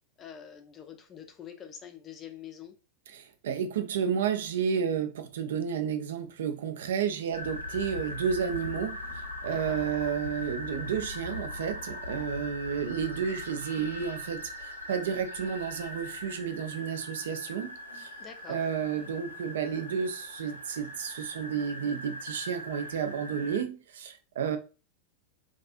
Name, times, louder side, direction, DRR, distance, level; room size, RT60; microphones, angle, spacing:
voice 1, 0.2-2.7 9.5-9.8 18.2-18.7, left 8 dB, 25° left, 0.4 m, -46 dB
voice 2, 3.1-18.1 18.5-24.6, right 7 dB, 60° right, 0.4 m, -31 dB
sound 1, 7.3-23.6, left 2 dB, 80° left, 0.5 m, -40 dB
2.4 x 2.3 x 2.5 m
figure-of-eight pair, 90°, 0 cm